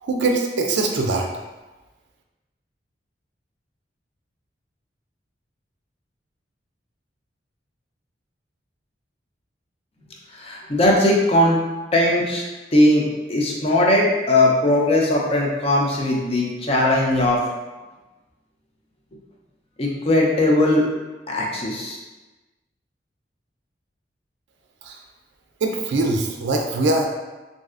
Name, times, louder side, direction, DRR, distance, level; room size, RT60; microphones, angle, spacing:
voice 1, 0.0-1.3 24.8-25.0 25.6-27.1, right 2 dB, 70° right, 1 dB, 0.4 m, -22 dB
voice 2, 10.3-11.6 11.9-12.4 12.7-13.0 13.3-17.5 19.8-20.8 21.3-22.0, left 1 dB, 35° left, -2 dB, 0.5 m, -19 dB
3.2 x 2.6 x 2.4 m, 1.2 s
head